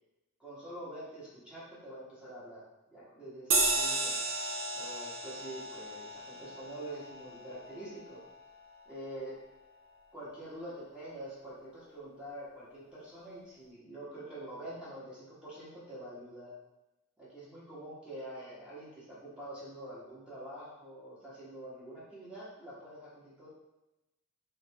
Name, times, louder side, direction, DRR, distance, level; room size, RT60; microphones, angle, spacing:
voice 1, 0.4-2.6 2.9-4.2 4.7-8.2 8.9-9.4 10.1-16.5 17.2-23.5, right 1 dB, 5° right, -9 dB, 1.3 m, -46 dB
sound 1, 3.5-8.4, right 2 dB, 65° right, 0.7 m, -34 dB
3.6 x 3.2 x 3.5 m, 0.97 s
head